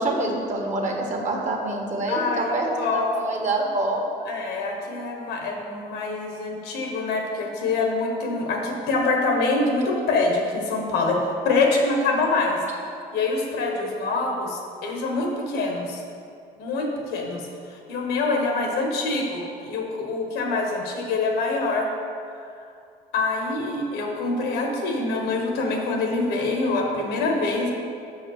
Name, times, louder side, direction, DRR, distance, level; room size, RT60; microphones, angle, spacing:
voice 1, 0.0-4.0, right 2 dB, 45° right, 0 dB, 1.5 m, -26 dB
voice 2, 2.1-3.1 4.3-12.6 13.1-16.0 16.6-17.4 17.7-21.9 23.1-27.7, left 3 dB, 90° left, 1 dB, 1.4 m, -25 dB
6.1 x 5.6 x 6.5 m, 2.4 s
cardioid pair, 110°, 17 cm